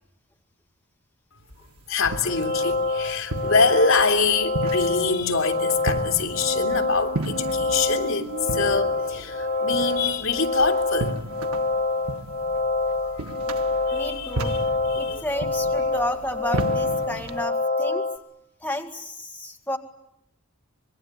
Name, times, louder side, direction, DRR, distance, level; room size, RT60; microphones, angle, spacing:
sound 1, 1.5-17.4, right 2 dB, 85° right, 1.5 m, -35 dB
voice 1, 1.9-11.3 12.8-13.3 13.9-15.2, left 4 dB, 65° left, 2.8 m, -25 dB
sound 2, 2.1-18.2, left 3 dB, 40° left, 2.4 m, -26 dB
Squeak, 6.3-12.2, right 2 dB, 70° right, 4.6 m, -42 dB
voice 2, 13.9-14.5 14.9-18.1 18.6-19.8, left 1 dB, 10° left, 1.9 m, -31 dB
26.0 x 21.5 x 9.4 m
head